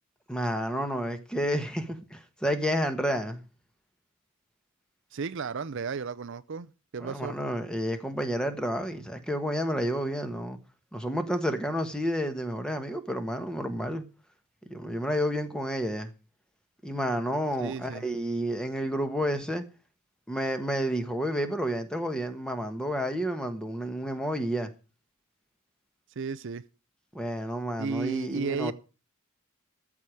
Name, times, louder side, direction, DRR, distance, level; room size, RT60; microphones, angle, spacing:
voice 1, 0.3-3.4 7.0-10.6 10.9-14.1 14.7-16.1 16.8-19.6 20.3-24.7 27.1-28.7, equal, 5° left, 1.3 m, -30 dB
voice 2, 5.1-6.7 6.9-7.4 17.6-18.1 26.2-26.6 27.8-28.7, right 5 dB, 55° right, 0.5 m, -33 dB
14.0 x 4.8 x 9.0 m
head